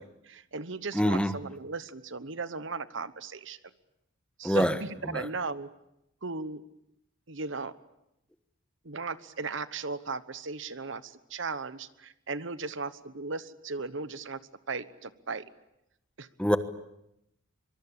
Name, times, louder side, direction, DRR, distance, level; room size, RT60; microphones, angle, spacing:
voice 1, 0.2-3.6 4.4-5.7 6.2-6.6 7.3-7.7 8.8-14.4 14.7-15.4 16.2-16.3, right 4 dB, 65° right, 14 dB, 1.1 m, -36 dB
voice 2, 0.9-1.3 4.4-4.7 5.1-5.3 16.4-16.6, equal, 5° left, 10 dB, 1.2 m, -24 dB
24.5 x 23.5 x 8.6 m, 0.82 s
head